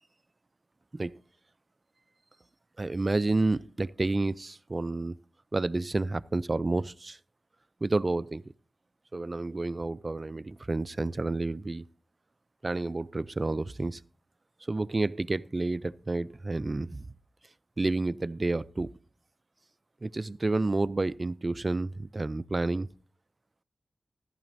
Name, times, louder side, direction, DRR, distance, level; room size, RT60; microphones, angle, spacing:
voice 1, 2.8-5.2 5.5-7.2 7.8-8.4 9.1-11.8 12.6-14.0 14.7-17.0 17.8-18.9 20.0-22.9, right 2 dB, 40° right, 0.4 m, -30 dB
14.0 x 11.5 x 2.6 m
cardioid pair, 55°, 0 cm